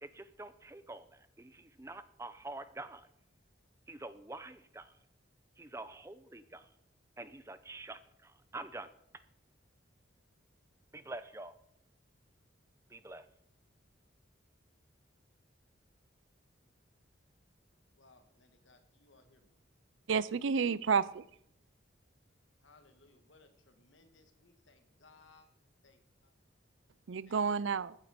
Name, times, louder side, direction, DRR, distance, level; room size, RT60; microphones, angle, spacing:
voice 1, 0.0-3.1 3.9-4.9 5.6-6.7 7.2-8.9 10.9-11.5 12.9-13.2, right 2 dB, 15° right, 0.6 m, -46 dB
voice 2, 18.0-19.5 22.6-25.5 25.8-26.3 27.3-27.4, left 3 dB, 75° left, 1.8 m, -64 dB
voice 3, 20.1-21.2 27.1-28.0, right 5 dB, 80° right, 0.5 m, -30 dB
14.5 x 9.0 x 5.2 m
head